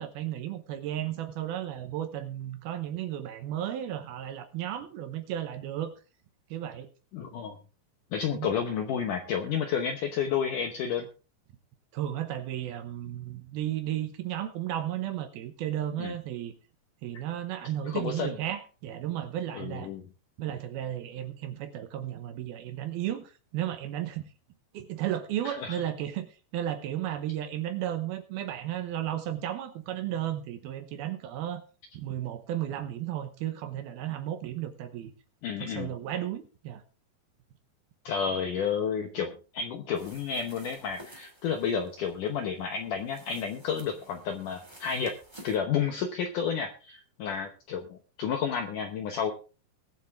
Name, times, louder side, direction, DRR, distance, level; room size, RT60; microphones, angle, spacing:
voice 1, 0.0-5.9 6.5-6.9 8.3-8.5 11.9-16.5 17.0-19.9 20.4-24.3 24.7-31.6 31.9-35.1 35.6-36.8, right 11 dB, 75° right, 9 dB, 2.6 m, -34 dB
voice 2, 7.1-7.6 8.1-11.1 16.0-16.1 17.8-18.4 19.5-20.0 25.5-25.8 35.4-35.9 38.1-45.1 45.4-49.3, left 7 dB, 75° left, 6 dB, 1.9 m, -31 dB
sound 1, 39.9-45.6, equal, 10° right, 1.2 m, -53 dB
21.0 x 7.4 x 3.6 m, 0.34 s
omnidirectional pair, 5.0 m